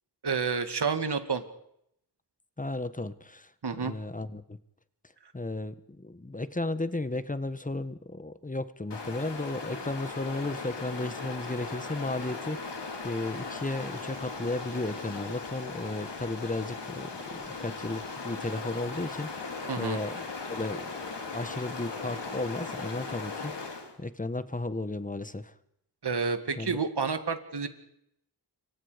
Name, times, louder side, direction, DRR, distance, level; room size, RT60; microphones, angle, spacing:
voice 1, 0.2-1.4 3.6-3.9 19.7-20.0 26.0-27.7, right 5 dB, 75° right, 8 dB, 2.3 m, -29 dB
voice 2, 2.6-3.5 3.8-4.6 5.3-20.2 20.5-20.9 21.3-25.5 26.6-26.8, left 2 dB, 20° left, 13 dB, 1.3 m, -34 dB
Stream, 8.9-24.0, left 4 dB, 85° left, 3.5 m, -38 dB
27.0 x 24.5 x 5.2 m, 0.74 s
wide cardioid pair, 80°, 41 cm